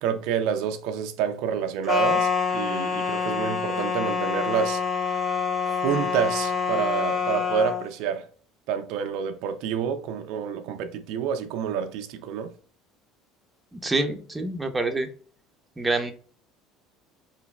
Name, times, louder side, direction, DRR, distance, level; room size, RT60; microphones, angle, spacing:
voice 1, 0.0-4.8 5.1-5.2 5.8-8.3 8.7-12.5, right 8 dB, 70° right, 0.4 m, -28 dB
sound 1, 1.9-7.8, left 5 dB, 30° left, 0.8 m, -26 dB
voice 2, 13.7-15.1 15.8-16.1, right 2 dB, 10° right, 0.6 m, -26 dB
3.8 x 3.0 x 2.2 m
supercardioid pair, 100°, 0 cm